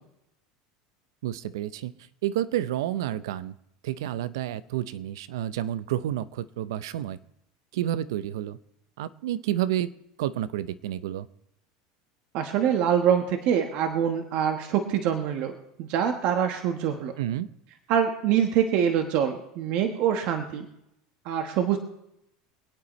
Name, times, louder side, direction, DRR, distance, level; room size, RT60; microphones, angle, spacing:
voice 1, 1.2-1.9 2.2-3.5 3.8-7.2 7.7-8.6 9.0-9.9 10.2-11.3 17.2-17.5, right 12 dB, 80° right, 15 dB, 0.6 m, -30 dB
voice 2, 12.3-17.1 17.9-20.7 21.2-21.8, right 9 dB, 60° right, 5 dB, 1.2 m, -25 dB
26.0 x 8.8 x 3.1 m, 0.83 s
supercardioid pair, 110°, 2 cm